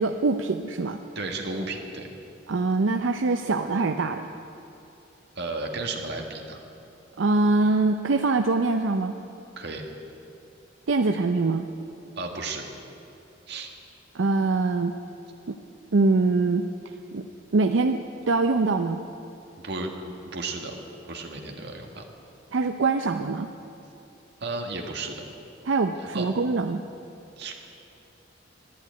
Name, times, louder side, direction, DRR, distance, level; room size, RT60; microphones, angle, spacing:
voice 1, 0.0-1.0 2.5-4.2 7.2-9.1 10.9-11.7 14.1-14.9 15.5-15.6 15.9-16.7 17.1-17.3 17.5-18.0 18.3-19.0 22.5-23.5 25.6-26.8, right 3 dB, 85° right, 6 dB, 0.6 m, -23 dB
voice 2, 1.2-2.1 5.4-6.6 9.6-9.8 12.2-12.7 13.5-13.7 19.6-20.8 21.1-22.0 24.4-25.2 26.1-26.3 27.4-27.6, right 3 dB, 60° right, 2 dB, 1.7 m, -33 dB
12.0 x 11.0 x 9.3 m, 2.8 s
head